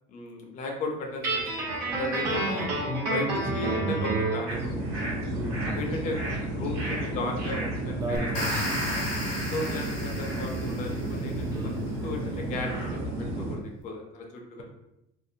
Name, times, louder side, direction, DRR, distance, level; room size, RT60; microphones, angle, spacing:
voice 1, 0.1-2.7 3.1-4.7 5.7-8.3 9.5-11.7 12.0-13.1 13.4-14.6, left 2 dB, 45° left, 1 dB, 0.5 m, -35 dB
Guitar, 1.2-4.5, right 2 dB, 85° right, 1.1 m, -28 dB
sound 1, 4.5-13.5, right 1 dB, 50° right, 1.1 m, -32 dB
voice 2, 5.3-5.8 7.9-9.1 11.5-11.8, right 1 dB, 20° right, 0 dB, 0.3 m, -35 dB
sound 2, 8.2-11.3, left 1 dB, 75° left, 0.8 m, -34 dB
2.5 x 2.0 x 2.7 m, 0.86 s
cardioid pair, 145°, 17 cm